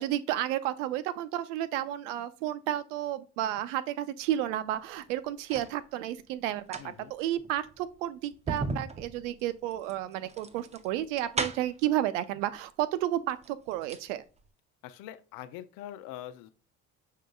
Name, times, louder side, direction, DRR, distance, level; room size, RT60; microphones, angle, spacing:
voice 1, 0.0-14.2, right 12 dB, 85° right, 0.5 m, -32 dB
sound 1, 4.8-5.8 6.5-11.9 12.8-12.9 13.3-14.1 14.4-14.5, right 3 dB, 20° right, 0.5 m, -37 dB
voice 2, 6.8-7.1 14.8-16.5, left 12 dB, 70° left, 0.6 m, -43 dB
6.4 x 3.7 x 2.3 m
hypercardioid pair, 65°, 36 cm